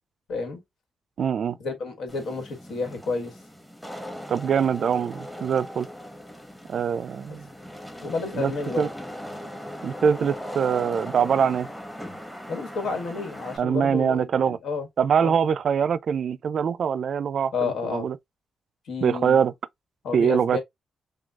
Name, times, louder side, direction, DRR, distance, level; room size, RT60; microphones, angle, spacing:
voice 1, 0.3-0.6 1.6-3.3 8.0-8.9 12.5-14.9 15.2-15.4 17.5-18.1 18.9-19.4 20.0-20.6, left 4 dB, 80° left, 1.6 m, -30 dB
voice 2, 1.2-1.6 4.3-5.9 6.7-7.5 8.3-8.5 8.8-8.9 9.8-11.7 13.6-14.6 15.0-18.2 19.0-19.5 20.1-20.6, right 7 dB, 60° right, 0.3 m, -23 dB
Wind / Rain, 2.1-13.6, equal, 5° left, 0.9 m, -39 dB
6.1 x 2.3 x 2.3 m
cardioid pair, 120°, 0 cm